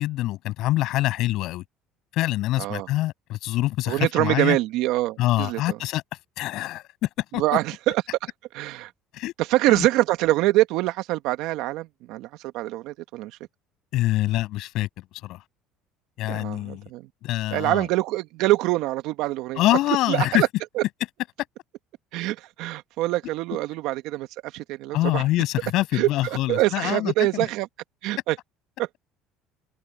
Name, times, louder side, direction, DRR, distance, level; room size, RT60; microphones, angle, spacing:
voice 1, 0.0-1.6 2.1-4.6 5.2-6.0 6.4-7.4 9.1-9.3 9.7-9.9 13.9-15.4 16.2-16.9 17.2-17.9 19.6-20.4 24.9-27.3, left 16 dB, 70° left, 7.1 m, -25 dB
voice 2, 3.9-5.8 7.4-8.0 8.5-8.9 9.4-13.4 16.3-17.1 17.5-19.6 20.1-20.5 20.8-20.9 22.1-25.2 25.9-27.7 28.0-28.4 28.8-28.9, right 17 dB, 75° right, 1.7 m, -25 dB
supercardioid pair, 90°, 0 cm